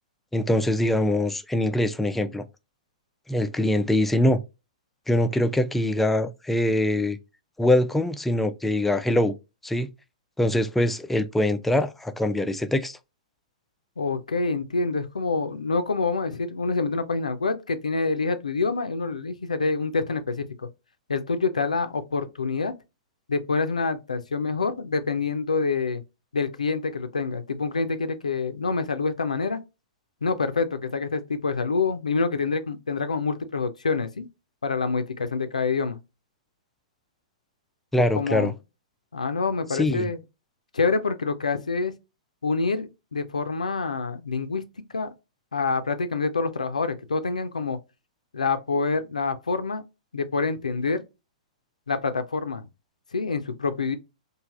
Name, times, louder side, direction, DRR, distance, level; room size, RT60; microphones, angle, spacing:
voice 1, 0.3-2.5 3.3-4.4 5.1-7.2 7.6-9.4 9.6-9.9 10.4-13.0 37.9-38.5 39.7-40.1, left 1 dB, 5° left, 0.3 m, -23 dB
voice 2, 14.0-20.7 21.1-22.7 23.3-26.0 26.3-29.6 30.2-34.3 34.6-36.0 38.1-38.5 39.1-40.2 40.7-41.9 42.4-44.6 44.9-45.1 45.5-47.8 48.3-49.8 50.1-51.0 51.9-52.7 53.1-54.0, left 4 dB, 80° left, 0.4 m, -26 dB
3.2 x 2.4 x 2.3 m
figure-of-eight pair, 110°, 4 cm